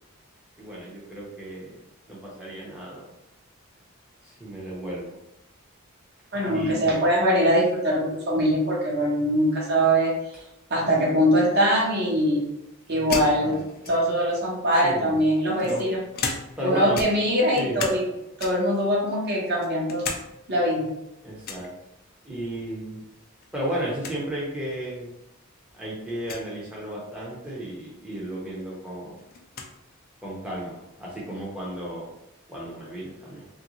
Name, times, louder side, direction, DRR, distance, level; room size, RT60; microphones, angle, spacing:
voice 1, 0.6-1.8 2.1-3.1 4.2-5.1 6.4-6.9 13.4-13.6 14.8-15.2 15.6-15.9 16.6-17.0 17.6-17.8 21.2-21.7 22.2-23.0 23.5-25.2 25.7-29.2 30.2-32.2 32.5-33.4, right 1 dB, 5° right, -6 dB, 0.6 m, -33 dB
voice 2, 6.3-10.1 10.7-12.5 12.9-13.5 13.9-16.0 16.6-18.0 18.4-20.1 20.5-20.9, equal, 50° right, -2 dB, 0.8 m, -22 dB
sound 1, 13.1-14.3 15.1-16.7 16.9-18.1 18.4-18.8 19.3-20.2 20.6-20.7 21.4-21.7 23.1-23.5 23.7-23.8 24.0-24.2 25.0-25.1 26.2-26.5 28.1-28.2 28.6-29.7, left 4 dB, 45° left, 0.4 m, -34 dB
3.1 x 2.5 x 2.9 m, 0.87 s
head